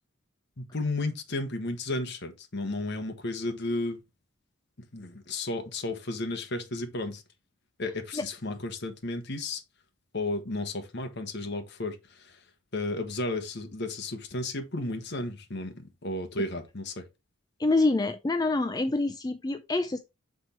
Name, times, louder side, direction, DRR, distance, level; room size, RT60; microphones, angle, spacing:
voice 1, 0.6-4.0 4.9-7.2 7.8-9.6 10.1-12.4 12.7-15.7 16.0-17.1, left 2 dB, 55° left, 1.2 m, -33 dB
voice 2, 17.6-20.0, left 2 dB, 20° left, 0.3 m, -26 dB
6.1 x 4.2 x 4.4 m
head